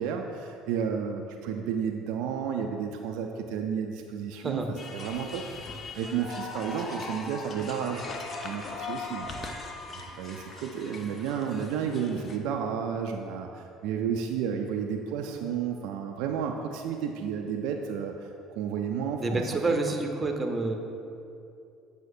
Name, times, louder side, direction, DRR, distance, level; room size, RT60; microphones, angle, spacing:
voice 1, 0.0-4.6 4.9-8.1 8.4-9.3 9.9-18.3 18.5-20.0, right 7 dB, 70° right, 3 dB, 0.3 m, -32 dB
sound 1, 4.8-12.4, left 3 dB, 40° left, 0.6 m, -39 dB
voice 2, 19.2-20.8, right 3 dB, 25° right, 4 dB, 0.7 m, -28 dB
7.7 x 4.9 x 2.6 m, 2.5 s
hypercardioid pair, 65°, 0 cm